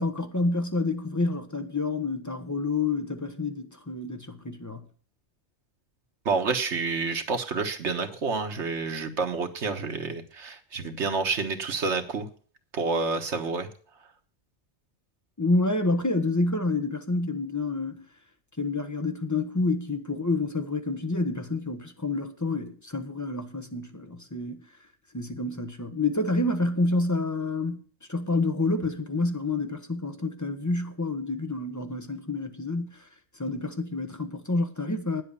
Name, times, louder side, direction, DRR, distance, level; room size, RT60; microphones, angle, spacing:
voice 1, 0.0-4.8 15.4-18.1 18.6-24.6 25.1-27.8 28.1-33.0 33.4-35.2, left 2 dB, 15° left, 1.0 m, -28 dB
voice 2, 6.2-12.3 12.7-13.7, right 4 dB, 85° right, 1.6 m, -29 dB
9.8 x 7.8 x 6.9 m
omnidirectional pair, 1.2 m